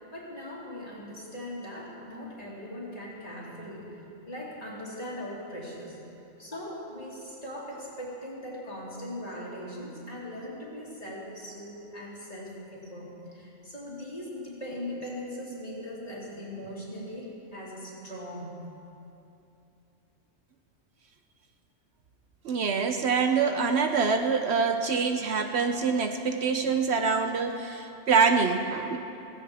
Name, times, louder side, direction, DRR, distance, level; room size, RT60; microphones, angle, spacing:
voice 1, 0.1-3.9 4.3-6.0 6.4-18.5, left 1 dB, 30° left, -5 dB, 2.8 m, -40 dB
voice 2, 22.4-29.0, right 5 dB, 65° right, 6 dB, 0.9 m, -25 dB
17.0 x 16.0 x 3.5 m, 2.8 s
omnidirectional pair, 1.3 m